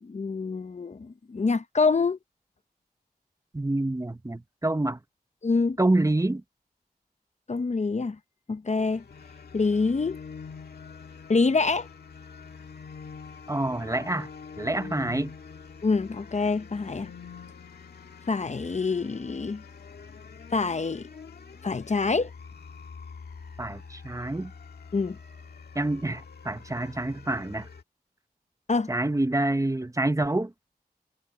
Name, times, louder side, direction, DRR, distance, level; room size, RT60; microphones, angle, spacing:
voice 1, 0.0-2.2 5.4-5.8 7.5-8.2 8.5-9.0 9.5-10.2 11.3-11.9 15.8-17.1 18.3-19.6 20.5-21.1 21.6-22.3 24.9-25.2 28.7-28.9, left 4 dB, 45° left, 0.8 m, -26 dB
voice 2, 3.5-5.0 5.8-6.4 13.5-14.3 14.6-15.3 23.6-24.5 25.7-27.7 28.9-30.5, right 2 dB, 20° right, 1.0 m, -27 dB
sound 1, 8.8-27.8, left 5 dB, 85° left, 2.0 m, -45 dB
cardioid pair, 55°, 16 cm